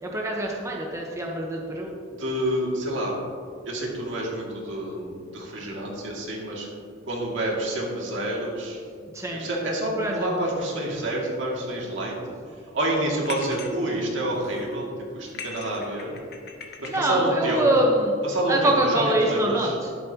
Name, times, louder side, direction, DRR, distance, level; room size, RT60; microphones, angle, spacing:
voice 1, 0.0-1.9 9.1-9.5 10.0-10.3 16.9-18.1 18.5-19.9, right 1 dB, 15° right, -1 dB, 1.0 m, -24 dB
voice 2, 2.1-3.1 3.7-6.7 7.1-8.8 9.3-12.1 12.7-14.9 15.1-16.1 16.8-17.8 18.2-19.7, right 1 dB, 70° right, -3 dB, 2.3 m, -28 dB
sound 1, 13.2-13.7 14.3-14.7 15.2-17.2, left 5 dB, 55° left, 1.2 m, -40 dB
12.0 x 11.0 x 2.9 m, 2.3 s
head